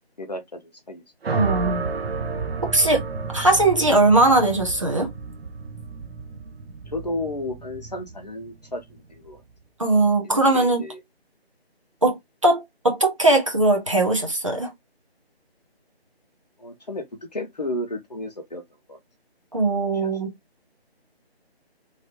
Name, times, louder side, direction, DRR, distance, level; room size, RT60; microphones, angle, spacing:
voice 1, 0.2-0.6 0.9-1.0 6.9-9.4 10.2-11.0 16.6-19.0 19.9-20.1, left 1 dB, 40° left, 0.7 m, -33 dB
sound 1, 1.2-9.5, right 4 dB, 70° right, 0.7 m, -31 dB
voice 2, 1.3-1.9 2.6-3.0 3.3-5.1 9.8-10.8 12.0-12.2 12.4-14.7 19.5-20.3, right 2 dB, 30° right, 0.8 m, -20 dB
3.3 x 2.5 x 2.8 m
figure-of-eight pair, 170°, 32 cm